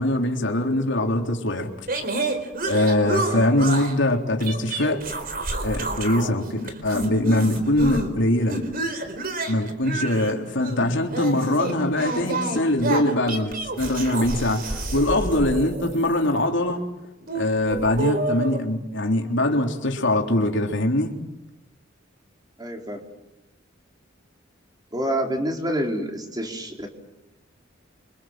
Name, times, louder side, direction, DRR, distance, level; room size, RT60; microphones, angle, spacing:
voice 1, 0.0-1.7 2.6-5.0 5.6-8.6 9.5-16.8 17.3-21.2, left 1 dB, 65° left, 2 dB, 3.6 m, -22 dB
sound 1, 1.9-4.0 4.4-6.3 6.6-8.1 8.5-16.5 17.2-18.6, right 2 dB, 50° right, 4.3 m, -29 dB
voice 2, 22.6-23.0 24.9-26.9, right 1 dB, 20° right, 2 dB, 4.5 m, -27 dB
29.5 x 26.0 x 7.6 m, 0.90 s
head